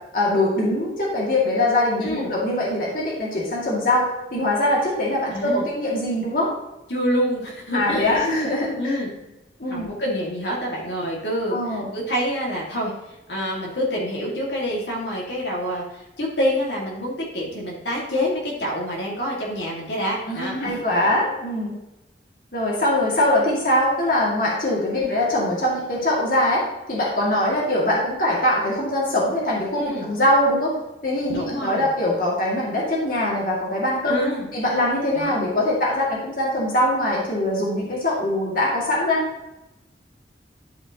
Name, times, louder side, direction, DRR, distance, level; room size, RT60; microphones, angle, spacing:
voice 1, 0.1-6.5 7.7-9.0 9.6-9.9 11.5-11.9 20.3-21.7 22.5-26.6 26.9-30.7 31.0-34.2 34.5-39.2, left 1 dB, 50° left, -4 dB, 2.2 m, -22 dB
voice 2, 5.3-5.6 6.9-8.2 8.8-9.1 9.7-20.8 24.9-25.1 29.8-30.1 31.3-31.9 34.1-34.5 35.1-35.4, equal, 80° left, -4 dB, 2.0 m, -27 dB
12.0 x 5.0 x 2.9 m, 0.96 s
head